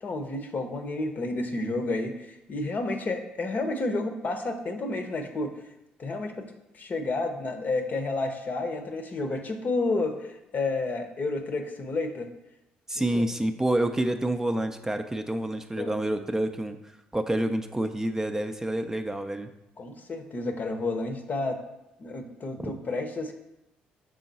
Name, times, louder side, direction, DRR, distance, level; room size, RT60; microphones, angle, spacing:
voice 1, 0.0-5.5 6.0-6.4 6.7-12.3 13.1-13.2 15.8-15.9 19.8-21.6 22.0-23.3, left 2 dB, 45° left, 6 dB, 0.8 m, -30 dB
voice 2, 12.9-19.5 22.6-22.7, right 1 dB, 10° right, 6 dB, 0.5 m, -28 dB
6.3 x 3.7 x 4.0 m, 0.91 s
hypercardioid pair, 55°, 4 cm